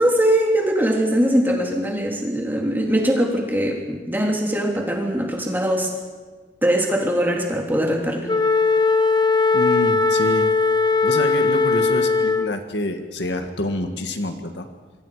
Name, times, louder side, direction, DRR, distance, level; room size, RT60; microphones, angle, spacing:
voice 1, 0.0-5.9 6.6-8.3, right 1 dB, 10° right, 0 dB, 3.3 m, -21 dB
Wind instrument woodwind instrument, 8.3-12.6, left 4 dB, 25° left, 1.0 m, -19 dB
voice 2, 9.5-10.5 11.0-14.7, left 1 dB, 75° left, 6 dB, 2.0 m, -27 dB
26.5 x 23.5 x 5.1 m, 1.4 s
head